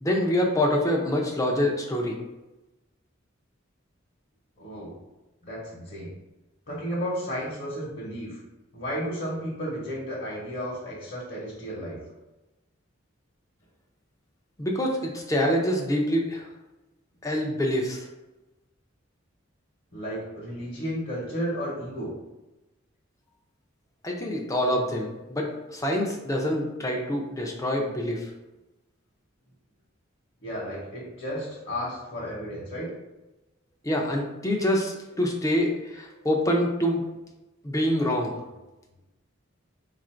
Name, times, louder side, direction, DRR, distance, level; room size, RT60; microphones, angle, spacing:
voice 1, 0.0-2.2 14.6-16.5 17.2-18.1 24.0-28.3 33.8-37.0 37.6-38.3, left 1 dB, 15° left, 0 dB, 0.6 m, -26 dB
voice 2, 4.6-5.0 5.4-6.1 6.7-8.4 8.7-12.0 19.9-22.1 30.4-32.9, equal, 45° left, -6 dB, 1.0 m, -33 dB
4.1 x 2.5 x 4.3 m, 1.0 s
head